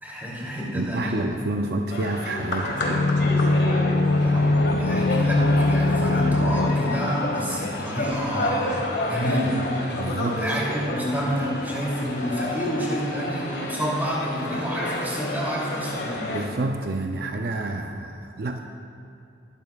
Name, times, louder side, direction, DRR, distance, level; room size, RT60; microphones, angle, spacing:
voice 1, 0.0-1.2 4.2-9.6 10.3-16.2, equal, 10° right, -5 dB, 2.9 m, -28 dB
voice 2, 0.7-3.1 9.9-10.5 16.0-18.6, right 2 dB, 55° right, 3 dB, 0.5 m, -29 dB
sound 1, 1.9-16.5, left 1 dB, 60° left, 1.9 m, -30 dB
sound 2, 2.7-8.4 8.7-8.8, left 2 dB, 85° left, 0.5 m, -22 dB
20.5 x 12.5 x 2.4 m, 2.7 s
head